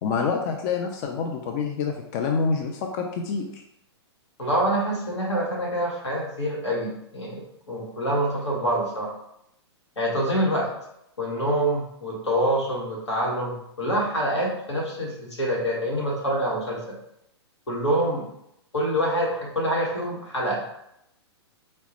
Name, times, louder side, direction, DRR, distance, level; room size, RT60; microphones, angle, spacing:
voice 1, 0.0-3.6, left 5 dB, 35° left, 3 dB, 0.3 m, -27 dB
voice 2, 4.4-7.4 7.7-9.1 10.0-10.7 11.2-17.0 17.7-18.2 18.7-20.9, right 1 dB, 80° left, -3 dB, 1.3 m, -26 dB
4.2 x 2.0 x 2.8 m, 0.79 s
figure-of-eight pair, 115°, 15 cm